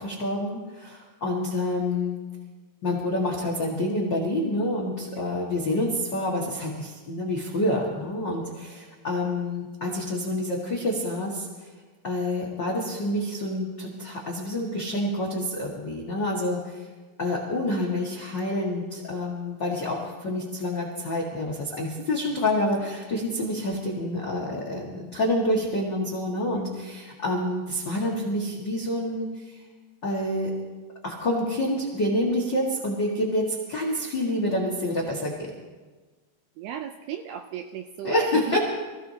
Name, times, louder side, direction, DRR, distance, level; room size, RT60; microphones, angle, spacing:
voice 1, 0.0-2.2 2.8-11.7 12.0-16.9 17.2-29.6 30.0-30.5 31.0-35.5 38.0-38.6, left 1 dB, 80° left, -2 dB, 1.0 m, -28 dB
voice 2, 36.6-38.6, right 9 dB, 85° right, 6 dB, 2.3 m, -36 dB
26.0 x 16.0 x 2.8 m, 1.3 s
omnidirectional pair, 5.2 m